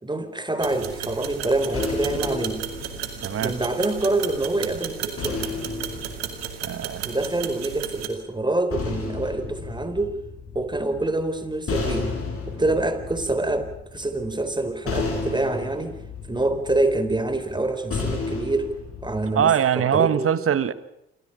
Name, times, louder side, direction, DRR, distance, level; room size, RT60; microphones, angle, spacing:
voice 1, 0.0-2.6 3.4-5.4 7.0-10.1 10.5-12.1 12.5-16.0 16.3-18.7 19.0-20.3, right 2 dB, 15° right, 4.1 m, -26 dB
sound 1, 0.6-8.1, right 10 dB, 85° right, 2.4 m, -34 dB
sound 2, 0.9-4.2 5.2-7.4 8.4-19.5, left 4 dB, 50° left, 7.6 m, -33 dB
voice 2, 3.2-3.6 6.6-7.1 19.3-20.7, right 8 dB, 50° right, 1.5 m, -22 dB
27.5 x 15.0 x 8.9 m
hypercardioid pair, 45°, 30 cm